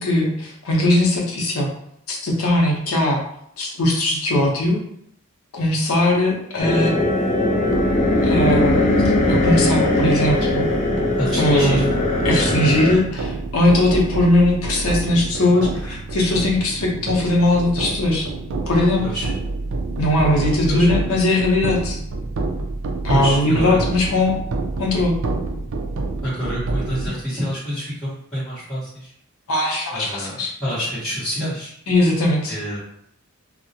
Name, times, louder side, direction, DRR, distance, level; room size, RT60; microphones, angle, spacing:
voice 1, 0.0-1.7 2.1-3.2 3.6-4.8 5.5-7.0 8.2-8.8 9.3-10.6 11.3-11.9 12.2-18.3 18.7-19.0 20.0-22.0 23.0-24.4 24.8-25.1 29.5-30.5 31.9-32.5, left 1 dB, 90° left, -1 dB, 0.6 m, -19 dB
sound 1, 6.6-13.0, left 2 dB, 35° left, 0.3 m, -20 dB
sound 2, 7.7-27.1, right 3 dB, 65° right, 0.4 m, -28 dB
voice 2, 11.2-11.9 19.0-19.3 20.6-20.9 23.1-23.8 26.2-29.1 29.9-31.7 32.5-32.8, equal, 5° left, -14 dB, 0.9 m, -27 dB
2.3 x 2.0 x 2.7 m, 0.71 s
head